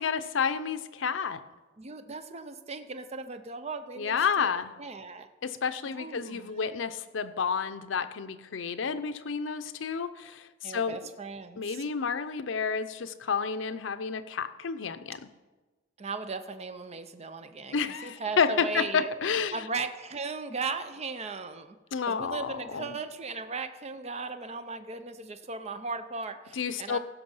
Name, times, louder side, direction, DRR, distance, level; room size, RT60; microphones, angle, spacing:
voice 1, 0.0-1.4 4.0-4.7 5.4-11.0 11.6-15.2 17.7-19.6 21.9-22.9 26.5-27.0, left 6 dB, 85° left, 11 dB, 0.6 m, -30 dB
voice 2, 1.8-4.5 4.8-5.3 5.8-6.5 10.6-11.8 16.0-19.1 19.5-21.8 22.1-27.0, right 4 dB, 35° right, 9 dB, 0.6 m, -37 dB
16.0 x 6.0 x 5.5 m, 1.2 s
head